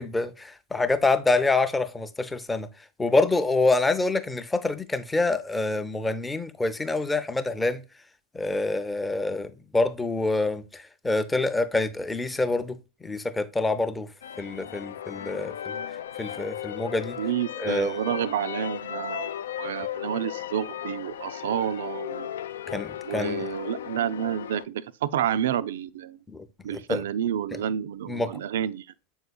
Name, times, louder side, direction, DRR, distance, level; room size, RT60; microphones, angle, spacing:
voice 1, 0.0-2.7 3.0-7.8 8.3-10.6 11.0-12.8 13.0-14.1 14.4-15.7 16.2-17.2 17.6-17.9 22.7-23.5 26.3-26.4 26.7-27.0 28.1-28.4, left 2 dB, 10° left, 0.6 m, -26 dB
sound 1, 14.2-24.6, left 10 dB, 60° left, 0.3 m, -36 dB
voice 2, 17.2-19.3 19.6-22.3 23.0-26.2 26.6-28.9, right 10 dB, 60° right, 0.4 m, -29 dB
7.7 x 5.5 x 2.2 m
figure-of-eight pair, 90°, 0 cm